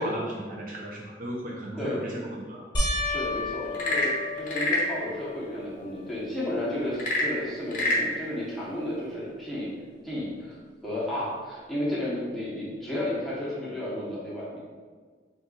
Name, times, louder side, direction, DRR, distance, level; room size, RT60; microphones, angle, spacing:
voice 1, 0.0-2.7, right 1 dB, 45° right, -2 dB, 0.5 m, -35 dB
sound 1, 2.7-5.3 5.9-6.5 6.9-7.0 10.2-10.3, left 2 dB, 25° left, 1.0 m, -32 dB
voice 2, 3.0-9.7 10.0-10.6 10.8-14.6, left 1 dB, ahead, -9 dB, 1.0 m, -32 dB
Frog / Percussion / Wood, 3.7-5.0 6.9-8.1, left 1 dB, 45° left, 0.7 m, -26 dB
3.8 x 2.5 x 3.8 m, 1.5 s
head